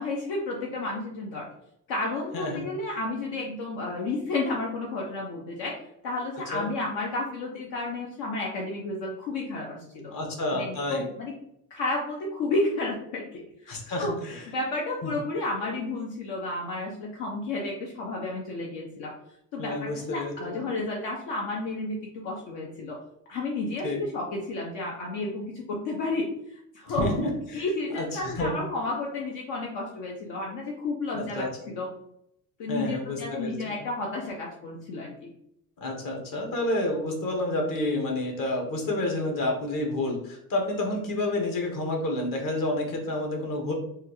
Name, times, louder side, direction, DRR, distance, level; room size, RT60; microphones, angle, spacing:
voice 1, 0.0-1.5 1.9-5.8 6.0-10.1 10.5-11.3 11.7-14.1 14.5-19.1 19.5-22.0 22.2-23.0 23.3-27.1 27.5-31.9 32.6-35.3, left 2 dB, 70° left, -1 dB, 0.8 m, -32 dB
voice 2, 2.3-2.7 6.5-6.7 10.1-11.1 13.7-14.5 15.0-15.1 19.6-20.6 23.8-24.0 27.0-27.6 27.9-28.5 31.1-31.7 32.7-33.7 35.8-43.7, left 1 dB, 50° left, 1 dB, 1.2 m, -29 dB
3.5 x 2.4 x 3.0 m, 0.75 s
supercardioid pair, 80°, 44 cm